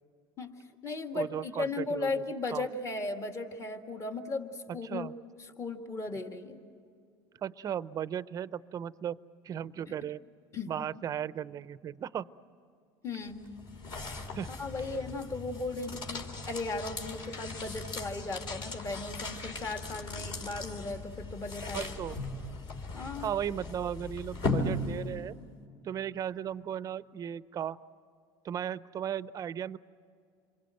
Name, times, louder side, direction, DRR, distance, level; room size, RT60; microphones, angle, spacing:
voice 1, 0.4-5.1 5.6-6.6 10.5-10.7 13.0-13.5 14.5-21.9 22.9-23.3, left 3 dB, 30° left, 5 dB, 2.0 m, -36 dB
voice 2, 1.1-2.2 2.5-2.6 4.8-5.1 7.4-9.2 9.4-10.2 10.7-12.3 14.3-14.5 21.7-22.2 23.2-25.4 25.8-27.8 28.4-29.8, right 9 dB, 35° right, 16 dB, 0.6 m, -36 dB
sound 1, 13.2-25.4, left 2 dB, 50° left, 3.6 m, -38 dB
28.0 x 23.0 x 7.8 m, 2.4 s
supercardioid pair, 125°, 11 cm